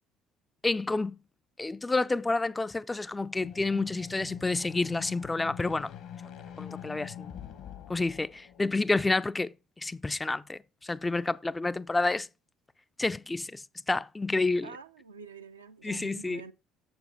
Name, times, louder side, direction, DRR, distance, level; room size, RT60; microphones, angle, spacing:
voice 1, 0.6-1.2 1.6-5.9 6.6-7.3 7.9-9.5 9.8-12.3 13.0-14.7 15.8-16.4, left 3 dB, 15° left, 0.3 m, -29 dB
sound 1, 3.3-9.0, left 9 dB, 55° left, 1.0 m, -44 dB
voice 2, 14.6-16.5, right 4 dB, 80° right, 0.4 m, -47 dB
7.1 x 7.0 x 3.9 m
figure-of-eight pair, 55°, 0 cm